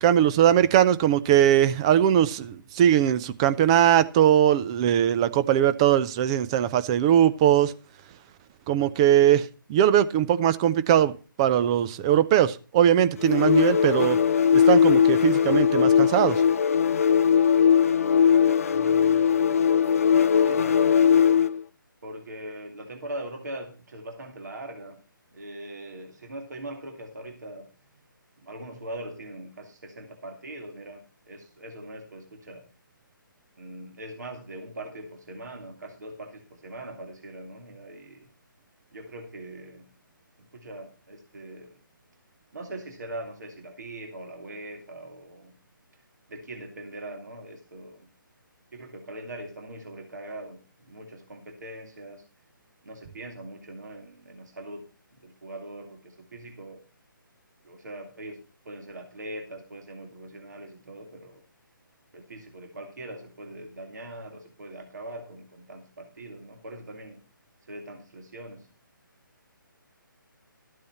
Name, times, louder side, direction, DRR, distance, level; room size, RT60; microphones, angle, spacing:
voice 1, 0.0-7.7 8.7-14.2 14.5-16.4, right 10 dB, 15° right, 0.4 m, -20 dB
sound 1, 13.2-21.6, left 7 dB, 40° left, 0.5 m, -20 dB
voice 2, 18.6-19.8 20.4-21.0 22.0-25.0 25.3-27.7 28.4-32.7 33.6-38.3 38.9-39.9 40.4-41.8 42.5-45.6 46.3-48.1 48.7-52.2 52.8-54.8 55.1-56.8 57.6-58.4 58.6-61.4 62.1-67.2 67.7-68.7, right 1 dB, 55° right, 2.3 m, -41 dB
13.0 x 8.5 x 4.2 m
figure-of-eight pair, 145°, 12 cm